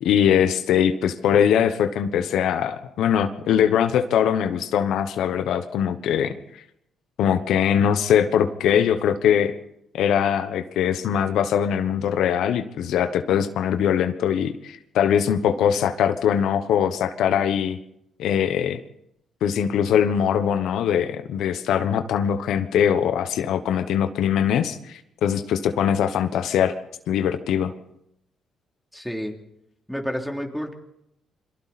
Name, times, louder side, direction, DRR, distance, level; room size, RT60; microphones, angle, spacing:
voice 1, 0.0-6.3 7.2-9.5 9.9-17.8 18.2-18.8 19.4-26.7 27.1-27.7, left 9 dB, 80° left, 9 dB, 1.1 m, -22 dB
voice 2, 28.9-29.3 29.9-30.7, equal, ahead, 1 dB, 3.1 m, -29 dB
27.0 x 23.0 x 4.3 m, 0.81 s
cardioid pair, 90°, 0 cm